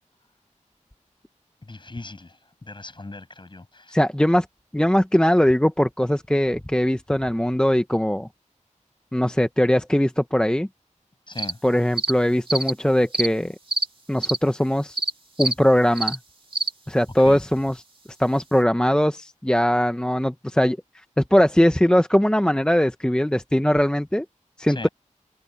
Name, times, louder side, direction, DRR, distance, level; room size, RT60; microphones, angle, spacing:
voice 1, 1.6-4.0 11.3-11.6 17.2-17.4 24.7-24.9, left 2 dB, 40° left, 6.5 m, -38 dB
voice 2, 3.9-4.5 4.7-8.3 9.1-10.7 11.6-13.5 14.1-15.0 15.4-16.2 16.9-17.8 18.2-20.8 21.2-24.2 24.6-24.9, equal, 5° left, 0.8 m, -20 dB
sound 1, 11.4-11.5 12.0-12.1 12.5-12.7 13.1-13.3 13.7-13.9 14.2-14.4 15.0-15.1 15.4-15.5 16.0-16.2 16.5-16.7, right 3 dB, 40° right, 2.4 m, -25 dB
wide cardioid pair, 95°, 13 cm